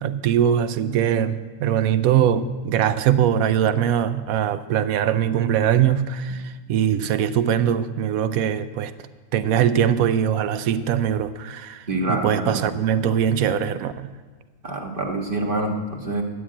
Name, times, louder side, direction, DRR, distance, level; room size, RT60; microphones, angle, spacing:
voice 1, 0.0-8.9 9.3-14.1, right 9 dB, 80° right, 12 dB, 0.7 m, -21 dB
voice 2, 11.9-12.6 14.6-16.2, right 2 dB, 30° right, 1 dB, 1.5 m, -26 dB
12.5 x 9.1 x 8.7 m, 1.4 s
omnidirectional pair, 2.1 m